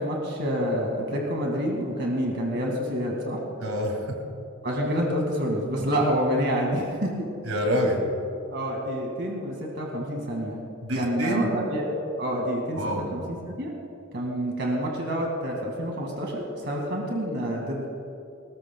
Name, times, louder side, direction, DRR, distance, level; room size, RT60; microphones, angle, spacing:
voice 1, 0.0-3.4 4.6-7.1 8.5-10.6 11.0-11.9 12.2-12.8 13.1-13.7 14.1-17.9, equal, 50° right, 0 dB, 2.0 m, -28 dB
voice 2, 3.6-4.2 7.5-8.0 10.8-11.6 12.8-13.1, equal, 75° right, 1 dB, 2.3 m, -26 dB
20.5 x 19.5 x 2.3 m, 2.6 s
head